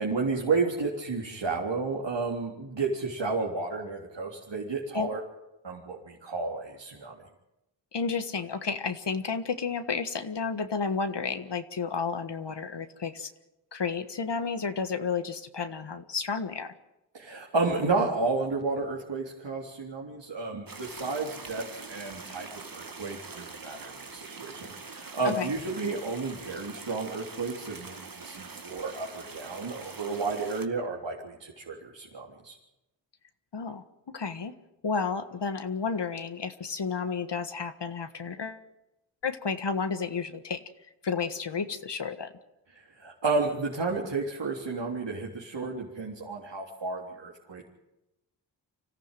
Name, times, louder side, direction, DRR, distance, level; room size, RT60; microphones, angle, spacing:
voice 1, 0.0-5.2 5.6-7.1 17.1-32.6 42.7-47.6, right 3 dB, 65° right, -2 dB, 3.6 m, -32 dB
voice 2, 7.9-13.3 13.7-16.7 25.2-25.5 33.5-33.8 34.1-34.5 34.8-38.6 39.2-40.6 41.0-42.3, left 5 dB, 60° left, 9 dB, 1.6 m, -31 dB
sound 1, 20.7-30.7, right 4 dB, 45° right, 2.2 m, -44 dB
25.0 x 14.5 x 9.1 m, 0.95 s
cardioid pair, 45°, 47 cm